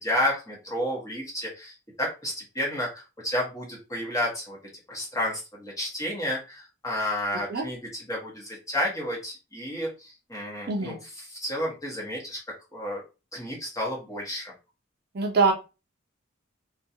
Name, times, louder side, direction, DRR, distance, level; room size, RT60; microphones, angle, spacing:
voice 1, 0.0-4.6 4.9-12.4 12.7-13.0 13.3-14.5, left 1 dB, 15° left, -3 dB, 0.9 m, -31 dB
voice 2, 15.1-15.5, right 4 dB, 50° right, 2 dB, 0.5 m, -23 dB
2.4 x 2.2 x 2.7 m, 0.29 s
head